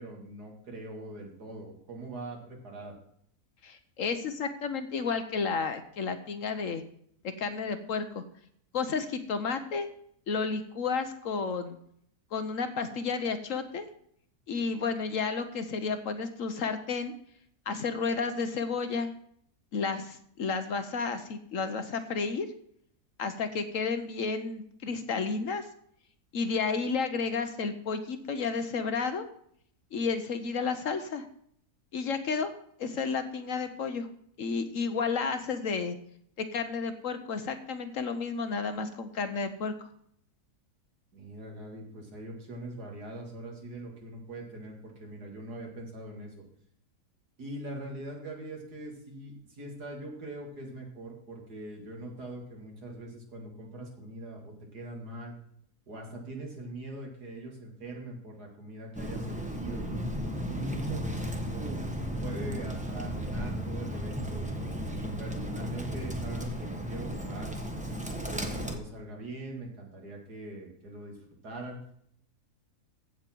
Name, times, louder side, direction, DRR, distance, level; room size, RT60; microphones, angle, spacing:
voice 1, 0.0-3.0 41.1-46.4 47.4-55.3 55.9-59.9 60.4-67.6 68.3-71.2 71.4-71.8, right 1 dB, 75° right, 0 dB, 2.9 m, -42 dB
voice 2, 3.6-6.8 7.2-8.2 8.7-9.9 10.3-11.8 12.3-13.9 14.5-17.1 17.7-19.1 19.7-22.5 23.2-25.7 26.3-29.3 29.9-31.3 31.9-32.5 32.8-34.1 34.4-36.0 36.4-39.9, left 5 dB, 60° left, 9 dB, 1.1 m, -32 dB
Bird, 58.9-68.8, equal, 5° right, 1.0 m, -34 dB
15.5 x 6.5 x 4.5 m, 0.67 s
omnidirectional pair, 1.7 m